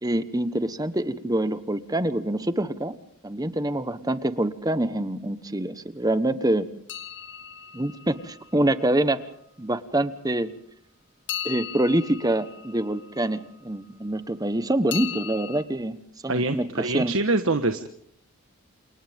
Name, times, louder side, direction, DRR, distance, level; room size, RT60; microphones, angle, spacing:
voice 1, 0.0-2.9 3.2-6.7 7.7-9.2 9.6-10.5 11.4-16.0 16.2-17.1, right 1 dB, 15° right, 12 dB, 1.2 m, -25 dB
sound 1, 6.9-8.9 11.3-13.7 14.9-15.6, left 10 dB, 55° left, 2.1 m, -37 dB
voice 2, 16.3-17.9, right 2 dB, 70° right, 7 dB, 1.4 m, -25 dB
29.0 x 28.5 x 3.6 m, 0.66 s
head